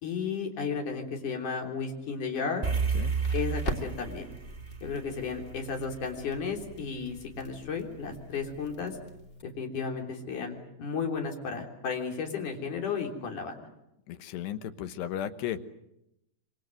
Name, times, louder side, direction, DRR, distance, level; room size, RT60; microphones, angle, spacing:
voice 1, 0.0-2.7 3.3-4.3 4.8-9.0 9.4-13.6, left 5 dB, 50° left, 2 dB, 4.9 m, -34 dB
sound 1, 2.6-7.1, right 5 dB, 45° right, 0.5 m, -32 dB
Crackle, 2.9-9.4, right 1 dB, 20° left, 1.5 m, -43 dB
voice 2, 14.1-15.6, left 10 dB, 85° left, 10 dB, 3.4 m, -35 dB
26.5 x 25.5 x 7.8 m, 0.83 s
omnidirectional pair, 4.8 m